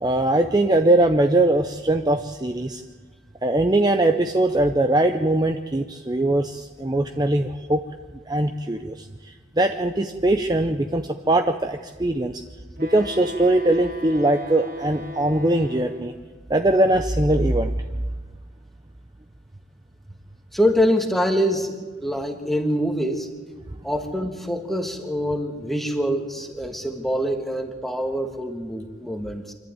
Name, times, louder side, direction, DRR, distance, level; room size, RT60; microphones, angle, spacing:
voice 1, 0.0-2.8 3.4-7.8 8.3-9.1 9.6-12.4 12.8-16.1 16.5-17.7, right 1 dB, 20° right, 6 dB, 0.6 m, -21 dB
Wind instrument woodwind instrument, 12.8-16.2, left 2 dB, 50° right, 2.8 m, -37 dB
voice 2, 20.5-23.3 23.8-29.5, equal, ahead, 5 dB, 1.5 m, -25 dB
25.5 x 12.0 x 9.1 m, 1.4 s
head